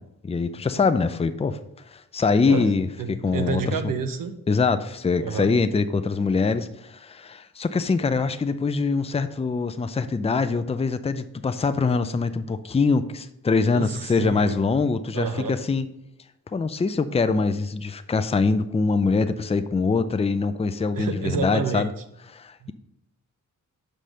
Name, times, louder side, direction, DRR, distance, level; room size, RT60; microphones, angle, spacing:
voice 1, 0.2-1.6 1.9-3.8 4.5-15.9 16.5-21.9 22.3-22.7, left 4 dB, 20° left, 10 dB, 0.5 m, -24 dB
voice 2, 3.0-4.3 5.2-5.5 13.6-14.6 15.1-15.6 20.9-21.9 22.6-22.7, right 5 dB, 80° right, 9 dB, 0.9 m, -29 dB
5.8 x 5.2 x 6.3 m, 0.81 s
cardioid pair, 90°, 33 cm